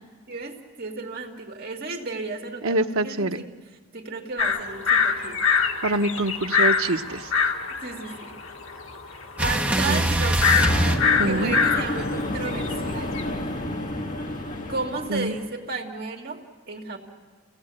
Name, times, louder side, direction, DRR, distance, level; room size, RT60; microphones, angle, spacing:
voice 1, 0.3-3.5 3.9-5.4 7.8-8.4 9.4-10.7 11.2-13.2 14.7-17.0, right 3 dB, 45° right, 0 dB, 2.7 m, -33 dB
voice 2, 2.6-3.4 5.8-7.3 9.9-10.0 11.2-11.5 15.1-15.3, right 2 dB, 75° right, 6 dB, 1.0 m, -25 dB
sound 1, 4.4-13.2, left 5 dB, 65° left, 1.8 m, -24 dB
sound 2, 9.4-11.9 13.3-14.6, right 1 dB, 5° right, 1.3 m, -25 dB
sound 3, 10.5-15.5, left 1 dB, 40° left, 2.0 m, -30 dB
30.0 x 17.0 x 8.9 m, 1.5 s
head